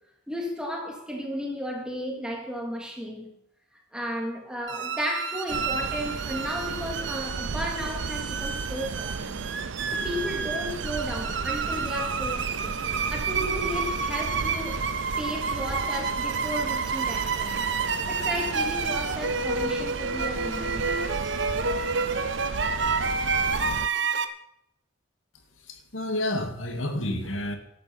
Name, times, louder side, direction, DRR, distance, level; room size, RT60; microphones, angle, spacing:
voice 1, 0.3-3.3 3.9-9.5 9.9-14.9 15.2-17.7 18.1-20.9, equal, 5° right, 3.3 m, -34 dB
sound 1, 4.7-24.2, right 4 dB, 65° right, 1.2 m, -30 dB
sound 2, 5.5-23.9, right 4 dB, 80° right, 0.6 m, -35 dB
voice 2, 25.7-27.6, left 1 dB, 85° left, 2.3 m, -30 dB
14.0 x 12.0 x 6.0 m
head